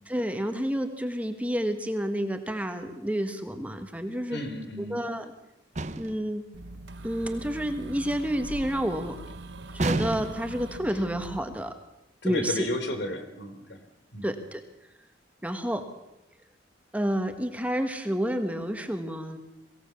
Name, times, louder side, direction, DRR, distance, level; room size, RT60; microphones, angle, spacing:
voice 1, 0.1-4.4 4.8-5.3 6.0-6.4 7.0-9.2 9.7-11.7 12.2-12.7 14.2-14.6 15.4-15.8 16.9-19.4, equal, 10° right, 6 dB, 1.5 m, -29 dB
voice 2, 4.3-5.0 12.2-13.8 14.1-14.3, left 1 dB, 75° left, 7 dB, 3.5 m, -33 dB
sound 1, 5.8-6.3 9.8-10.6, right 2 dB, 40° right, 0.9 m, -30 dB
sound 2, 6.5-11.4, right 2 dB, 75° right, 1.2 m, -42 dB
23.0 x 17.0 x 7.2 m, 0.92 s
head